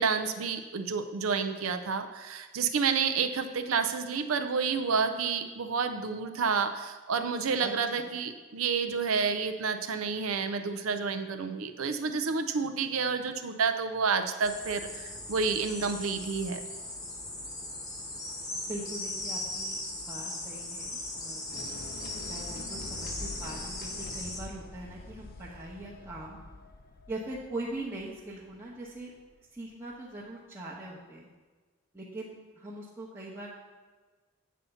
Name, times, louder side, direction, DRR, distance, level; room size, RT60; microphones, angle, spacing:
voice 1, 0.0-16.6, right 5 dB, 65° right, 7 dB, 0.5 m, -30 dB
voice 2, 7.6-8.1 18.7-21.7 22.2-26.4 27.1-29.1 29.5-31.3 31.9-33.5, right 1 dB, 10° right, -7 dB, 0.9 m, -41 dB
sound 1, 14.4-24.4, left 2 dB, 15° left, 1.0 m, -38 dB
sound 2, 21.5-29.6, left 2 dB, 40° left, 0.5 m, -46 dB
8.3 x 4.2 x 6.9 m, 1.4 s
head